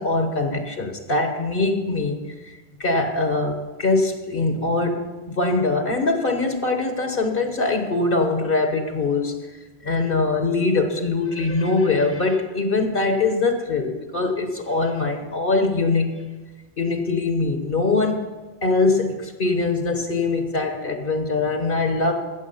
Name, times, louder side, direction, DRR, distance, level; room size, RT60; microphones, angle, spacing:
voice 1, 0.0-2.2 2.4-2.5 2.8-9.3 9.8-16.1 16.8-18.2 18.6-22.2, left 3 dB, 60° left, 5 dB, 1.4 m, -22 dB
15.5 x 7.4 x 5.5 m, 1.2 s
omnidirectional pair, 1.0 m